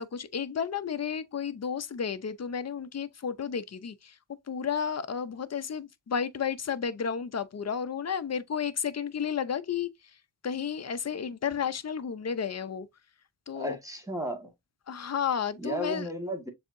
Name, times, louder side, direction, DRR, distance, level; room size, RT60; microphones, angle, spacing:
voice 1, 0.0-4.2 4.5-9.9 10.4-12.9 13.5-13.8 14.9-16.1, left 7 dB, 35° left, 0.6 m, -32 dB
voice 2, 13.5-14.5 15.6-16.5, equal, 5° right, 1.4 m, -34 dB
7.0 x 2.8 x 2.5 m
wide cardioid pair, 65°, 45 cm